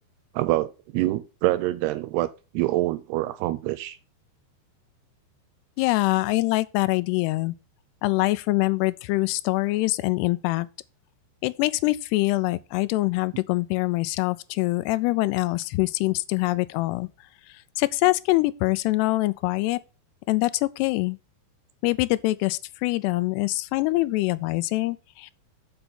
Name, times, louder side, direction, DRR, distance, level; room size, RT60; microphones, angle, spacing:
voice 1, 0.4-2.3 2.5-4.0, right 16 dB, 80° right, 2.4 m, -25 dB
voice 2, 5.8-7.6 8.0-10.7 11.4-17.1 17.8-19.8 20.3-21.2 21.8-25.3, left 20 dB, 85° left, 2.5 m, -24 dB
8.0 x 4.5 x 6.8 m
omnidirectional pair, 4.9 m